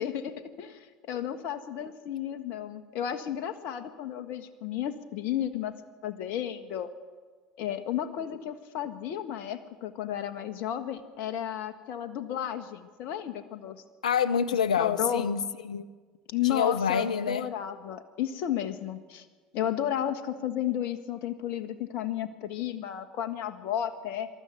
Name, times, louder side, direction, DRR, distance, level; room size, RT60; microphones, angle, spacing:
voice 1, 0.0-5.7 6.0-6.9 7.6-13.8 14.8-15.2 16.3-19.3 19.5-24.3, left 10 dB, 65° left, 9 dB, 1.5 m, -33 dB
voice 2, 14.0-15.9 16.4-17.5, left 7 dB, 90° left, 16 dB, 0.8 m, -27 dB
26.0 x 13.0 x 7.9 m, 1.4 s
hypercardioid pair, 70°, 4 cm